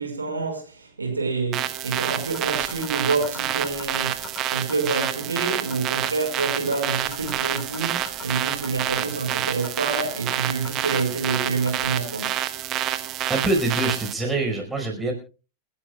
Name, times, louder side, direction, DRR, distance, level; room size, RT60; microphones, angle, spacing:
voice 1, 0.0-12.3, right 4 dB, 80° right, 5.2 m, -27 dB
sound 1, 1.5-14.1, right 12 dB, 35° right, 1.1 m, -28 dB
sound 2, 2.3-11.9, left 7 dB, 30° left, 4.5 m, -41 dB
voice 2, 13.3-15.1, right 2 dB, 10° right, 5.0 m, -24 dB
29.5 x 11.5 x 2.4 m
figure-of-eight pair, 90°, 0 cm